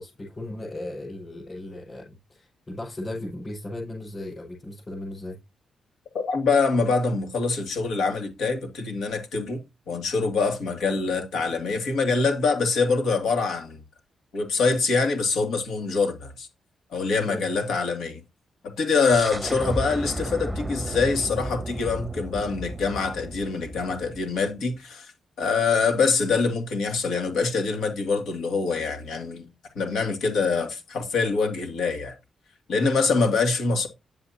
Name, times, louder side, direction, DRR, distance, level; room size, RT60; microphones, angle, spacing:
voice 1, 0.0-5.4 10.8-10.9 17.3-17.5, left 1 dB, 30° left, 5.8 m, -36 dB
voice 2, 6.1-9.6 9.9-13.8 14.3-16.5 16.9-18.2 18.8-25.1 25.4-29.5 29.8-32.1 32.7-33.9, left 4 dB, 85° left, 2.4 m, -24 dB
sound 1, 19.1-24.6, right 1 dB, 10° right, 0.8 m, -34 dB
9.7 x 7.8 x 2.8 m
cardioid pair, 105°, 0 cm